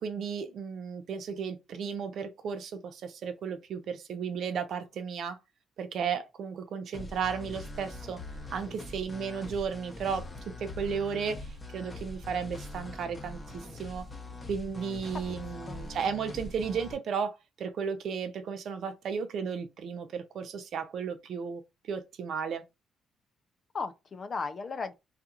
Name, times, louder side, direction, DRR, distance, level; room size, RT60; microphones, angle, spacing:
voice 1, 0.0-5.4 5.8-8.2 8.5-10.3 10.6-14.1 14.5-22.6, right 6 dB, 65° right, 0.5 m, -34 dB
sound 1, 6.9-16.9, left 2 dB, 25° left, 0.8 m, -43 dB
voice 2, 15.3-15.8 23.7-24.9, left 4 dB, 45° left, 0.4 m, -36 dB
2.8 x 2.4 x 2.4 m
cardioid pair, 90°, 0 cm